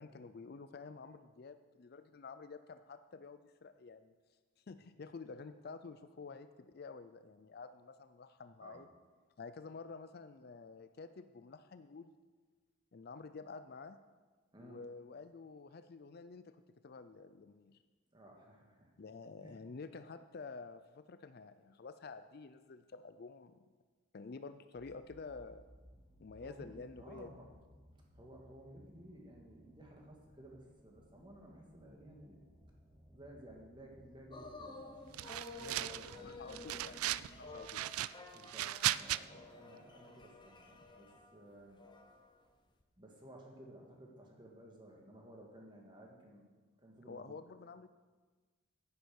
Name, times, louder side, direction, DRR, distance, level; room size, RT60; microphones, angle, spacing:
voice 1, 0.0-4.1 4.7-8.9 9.4-12.2 12.9-14.0 14.6-16.6 16.8-17.8 19.0-23.6 24.1-25.6 26.2-27.4 36.2-37.0 37.4-37.9 47.1-47.9, left 4 dB, 45° left, 11 dB, 0.4 m, -50 dB
voice 2, 14.5-14.8 18.1-18.9 19.4-19.5 26.4-27.5 27.9-32.4 33.1-35.0 35.5-36.9 38.3-41.8 43.0-46.5 46.8-47.4, right 1 dB, 20° right, 0 dB, 1.8 m, -56 dB
sound 1, 24.7-37.6, equal, 60° right, 3.7 m, -62 dB
sound 2, 34.3-42.4 42.8-42.9, left 3 dB, 20° left, 0.9 m, -52 dB
sound 3, 35.1-36.2 36.5-37.3 37.6-39.2, right 14 dB, 85° right, 0.3 m, -37 dB
9.6 x 9.6 x 6.4 m, 1.4 s
head